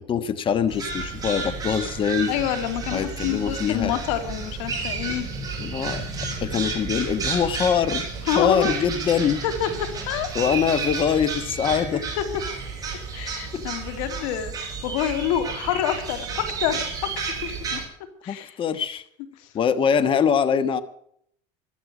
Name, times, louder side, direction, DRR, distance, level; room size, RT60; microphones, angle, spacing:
voice 1, 0.0-2.3 2.9-3.9 5.6-6.0 6.4-9.4 10.3-12.0 13.5-13.6 18.3-19.0 19.5-20.8, left 7 dB, 30° left, 13 dB, 1.4 m, -23 dB
sound 1, 0.7-17.8, right 4 dB, 20° right, 5.8 m, -31 dB
voice 2, 2.3-5.3 8.3-8.7 9.4-9.7 10.1-10.3 11.9-12.2 13.1-16.8 17.4-17.8 18.2-18.6, left 10 dB, 80° left, 8 dB, 2.8 m, -27 dB
15.0 x 12.5 x 6.1 m, 0.66 s
supercardioid pair, 130°, 16 cm